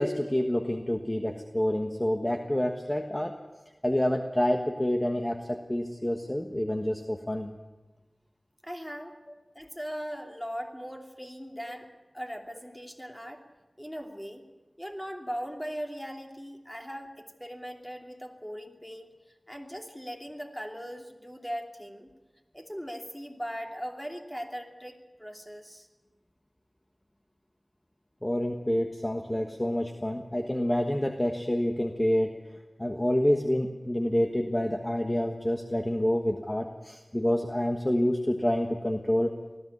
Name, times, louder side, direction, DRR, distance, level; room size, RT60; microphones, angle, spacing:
voice 1, 0.0-3.3 3.8-7.5 28.2-32.4 32.8-39.4, left 1 dB, 25° left, 4 dB, 1.3 m, -28 dB
voice 2, 8.6-9.1 9.5-11.9 12.1-13.4 13.8-14.4 14.8-19.1 19.5-22.1 22.5-25.9, equal, 5° left, 3 dB, 2.8 m, -39 dB
19.5 x 14.5 x 9.6 m, 1.2 s
wide cardioid pair, 45°, 0 cm